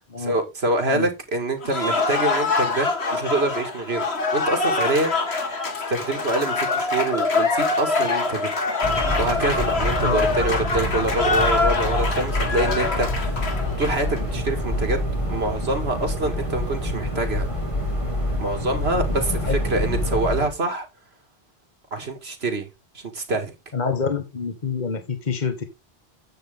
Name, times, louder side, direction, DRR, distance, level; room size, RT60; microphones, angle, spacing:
voice 1, 0.2-4.1 4.3-5.1 5.9-8.5 9.0-13.4 13.8-15.0 15.3-17.5 18.4-20.9 21.9-22.7 22.9-23.5, right 2 dB, 80° right, 2.3 m, -25 dB
Cheering / Applause, 1.6-14.2, left 3 dB, 85° left, 2.0 m, -24 dB
sound 1, 8.8-20.5, left 1 dB, 30° left, 2.8 m, -26 dB
voice 2, 23.7-25.6, left 5 dB, 45° left, 1.4 m, -26 dB
9.4 x 7.8 x 3.6 m
omnidirectional pair, 1.1 m